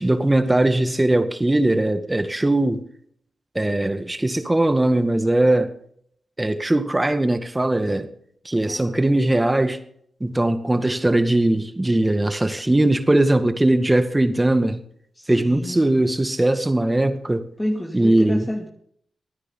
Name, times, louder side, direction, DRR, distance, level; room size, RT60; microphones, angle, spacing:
voice 1, 0.0-2.8 3.6-5.7 6.4-8.1 8.5-9.8 10.2-14.8 15.3-17.4 17.9-18.4, right 1 dB, 20° right, 1.9 m, -20 dB
voice 2, 8.7-9.0 15.1-16.0 17.6-18.7, equal, 10° left, 2.5 m, -29 dB
25.5 x 9.7 x 3.9 m
supercardioid pair, 45°, 0 cm